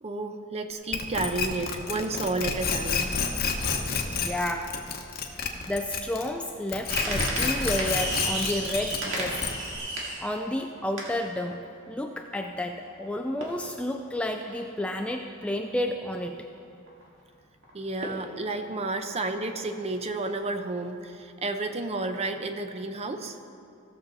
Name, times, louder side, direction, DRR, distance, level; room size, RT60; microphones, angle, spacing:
voice 1, 0.0-3.1 17.7-23.4, right 2 dB, 30° right, 7 dB, 0.6 m, -31 dB
sound 1, 0.9-6.4 6.7-9.8, left 5 dB, 45° left, 0.9 m, -29 dB
voice 2, 4.1-4.8 5.7-9.4 10.2-16.5, left 1 dB, 5° left, 4 dB, 0.3 m, -31 dB
sound 2, 6.9-11.7 12.3-12.4 12.6-13.1 13.4-14.8 15.2-15.4 15.9-16.1 16.6-16.7 16.9-17.0 17.6-17.7 18.0-18.3 18.9-19.0 19.4-19.8 20.4-20.6 20.9-21.0, right 1 dB, 65° right, 1.9 m, -33 dB
16.5 x 6.9 x 4.0 m, 2.5 s
head